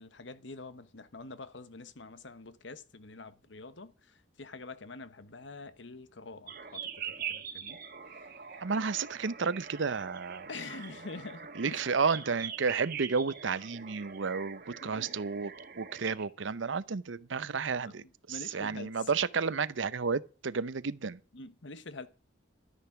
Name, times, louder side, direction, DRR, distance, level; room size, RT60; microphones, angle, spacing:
voice 1, 0.0-7.8 8.2-8.6 10.5-11.8 14.8-15.2 17.8-19.1 21.3-22.1, left 3 dB, 70° left, 1.1 m, -46 dB
sound 1, 6.5-16.2, right 7 dB, 50° right, 1.5 m, -43 dB
voice 2, 8.6-10.5 11.6-15.5 15.8-21.2, right 5 dB, 80° right, 0.7 m, -32 dB
12.5 x 10.0 x 5.8 m
head